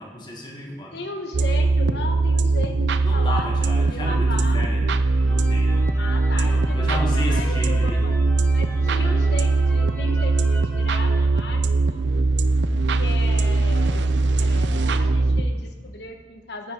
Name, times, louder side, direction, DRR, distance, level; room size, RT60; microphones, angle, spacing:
voice 1, 0.0-1.0 3.0-4.9 5.2-5.9 6.3-8.0 8.9-9.2, left 1 dB, 25° left, -1 dB, 1.8 m, -33 dB
voice 2, 0.9-4.6 6.0-8.1 8.5-12.0 12.9-14.0 14.3-16.7, left 2 dB, 75° left, 4 dB, 1.3 m, -36 dB
sound 1, 1.3-15.5, right 3 dB, 90° right, 0.5 m, -20 dB
sound 2, 5.1-12.1, equal, 10° left, 1.6 m, -42 dB
9.5 x 8.8 x 4.7 m, 1.5 s
head